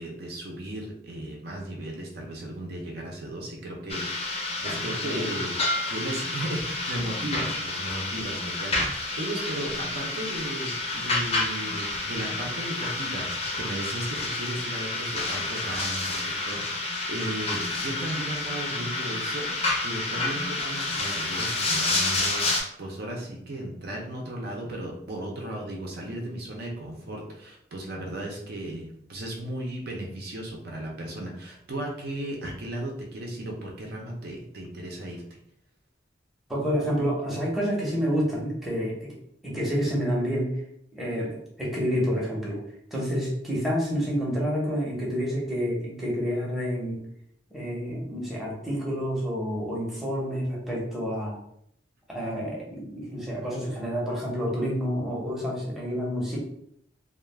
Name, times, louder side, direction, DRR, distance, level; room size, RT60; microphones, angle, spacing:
voice 1, 0.0-5.6 5.9-22.5 22.8-35.2, right 1 dB, 60° right, 0 dB, 0.5 m, -35 dB
sound 1, 3.9-22.6, left 2 dB, 35° left, 0.5 m, -29 dB
voice 2, 4.6-5.3 36.5-39.1 39.4-40.6 40.9-42.6 42.9-47.0 47.5-51.4 52.1-56.4, equal, ahead, -5 dB, 0.7 m, -29 dB
2.2 x 2.1 x 3.2 m, 0.71 s
head